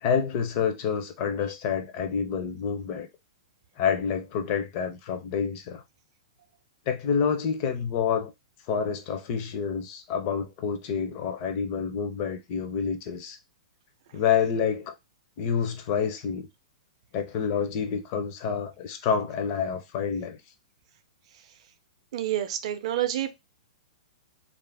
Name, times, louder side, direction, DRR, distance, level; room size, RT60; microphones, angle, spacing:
voice 1, 0.0-3.1 3.8-5.8 6.9-8.3 8.7-13.4 14.1-14.9 15.4-16.5 17.1-20.4, left 7 dB, 30° left, 0.4 m, -28 dB
voice 2, 22.1-23.3, right 12 dB, 45° right, 0.4 m, -28 dB
2.4 x 2.0 x 3.3 m
hypercardioid pair, 170°, 4 cm